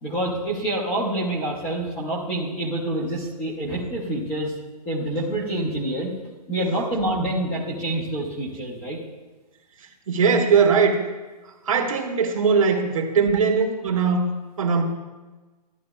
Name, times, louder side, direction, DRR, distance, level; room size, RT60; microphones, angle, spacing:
voice 1, 0.0-4.5 4.9-6.1 6.5-9.0, right 1 dB, 5° left, -3 dB, 0.5 m, -27 dB
voice 2, 10.1-11.0 11.7-14.3 14.6-14.8, right 5 dB, 55° right, 1 dB, 1.2 m, -20 dB
12.5 x 9.7 x 2.3 m, 1.2 s
hypercardioid pair, 175°, 21 cm